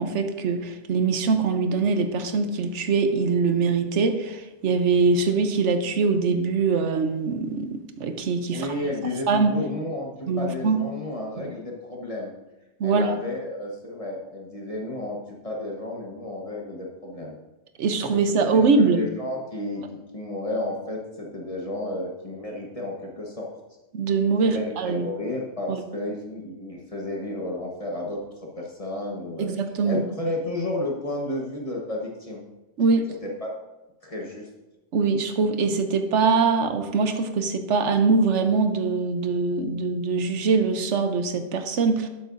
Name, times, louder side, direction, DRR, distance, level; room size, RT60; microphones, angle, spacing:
voice 1, 0.0-8.7 9.3-9.5 10.3-10.8 11.4-11.5 12.8-13.1 17.8-19.0 23.9-25.1 25.7-25.8 29.4-30.0 32.8-33.0 34.9-42.1, right 4 dB, 80° right, 8 dB, 1.1 m, -23 dB
voice 2, 8.5-12.3 12.8-17.4 18.3-23.6 24.4-29.5 29.8-32.4 33.2-33.5 34.0-34.5, left 1 dB, 30° left, -1 dB, 1.3 m, -32 dB
12.0 x 8.5 x 2.6 m, 1.0 s
omnidirectional pair, 1.2 m